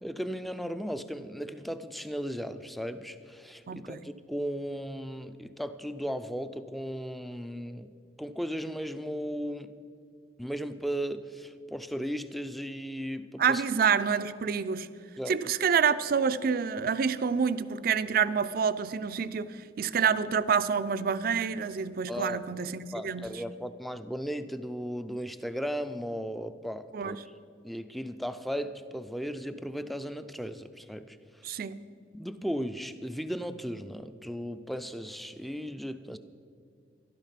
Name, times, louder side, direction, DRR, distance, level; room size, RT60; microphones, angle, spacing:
voice 1, 0.0-7.9 8.2-9.7 10.4-13.6 15.2-15.4 22.1-22.4 22.9-27.2 27.6-31.5 32.1-36.2, equal, ahead, 11 dB, 0.4 m, -36 dB
voice 2, 3.7-4.0 13.4-14.9 15.3-23.2 26.9-27.2 31.4-31.8, right 6 dB, 55° right, 14 dB, 0.4 m, -27 dB
12.5 x 11.5 x 5.7 m, 2.3 s
head